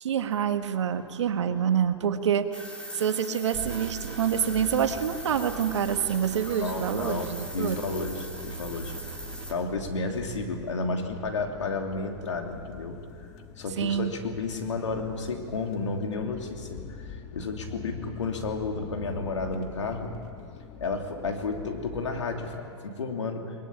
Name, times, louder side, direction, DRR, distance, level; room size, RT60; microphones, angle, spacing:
voice 1, 0.0-2.6 2.9-7.8 13.8-14.1, right 8 dB, 75° right, 8 dB, 1.6 m, -27 dB
sound 1, 2.5-9.5, equal, 5° left, 3.6 m, -41 dB
sound 2, 3.5-9.5, right 10 dB, 60° right, 0.9 m, -42 dB
sound 3, 4.5-22.6, left 8 dB, 45° left, 1.5 m, -45 dB
voice 2, 6.5-8.9 9.2-13.0 13.6-17.1 17.3-20.1 20.8-23.5, left 3 dB, 85° left, 3 dB, 3.0 m, -32 dB
21.5 x 21.0 x 8.8 m, 2.4 s
hypercardioid pair, 110°, 15 cm